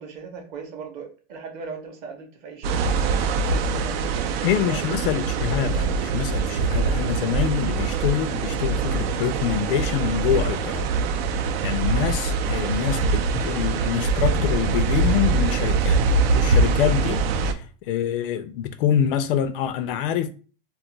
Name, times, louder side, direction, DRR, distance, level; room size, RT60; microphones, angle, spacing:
voice 1, 0.0-3.0 3.5-4.8, right 5 dB, 30° right, 0.6 m, -39 dB
sound 1, 2.6-17.5, right 4 dB, 90° right, 0.5 m, -23 dB
voice 2, 4.4-10.9 11.6-16.0 16.3-20.3, left 9 dB, 70° left, 0.4 m, -25 dB
2.3 x 2.1 x 3.8 m
supercardioid pair, 175°, 29 cm